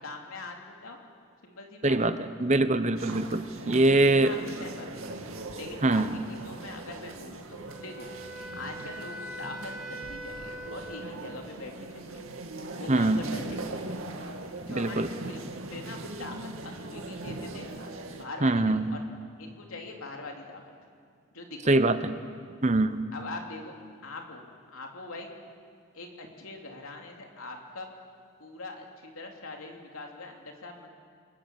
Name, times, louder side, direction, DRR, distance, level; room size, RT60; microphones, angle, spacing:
voice 1, 0.0-1.0 1.4-2.2 3.6-5.1 5.5-8.1 8.5-12.2 12.8-13.6 14.6-16.3 16.6-17.7 18.1-19.0 19.4-20.6 21.3-21.8 23.1-23.7 24.0-24.4 24.7-25.3 25.9-27.9 28.4-30.9, left 2 dB, 85° left, 1 dB, 3.4 m, -42 dB
voice 2, 1.8-2.1 2.4-4.4 5.8-6.2 12.9-13.2 14.7-15.1 18.4-18.9 21.7-22.1 22.6-23.0, right 2 dB, 35° right, 11 dB, 1.0 m, -23 dB
sound 1, 3.0-18.3, right 2 dB, 85° right, 2.2 m, -40 dB
Wind instrument woodwind instrument, 7.7-11.7, right 1 dB, 5° right, 2.2 m, -42 dB
28.5 x 22.0 x 7.5 m, 2.2 s
head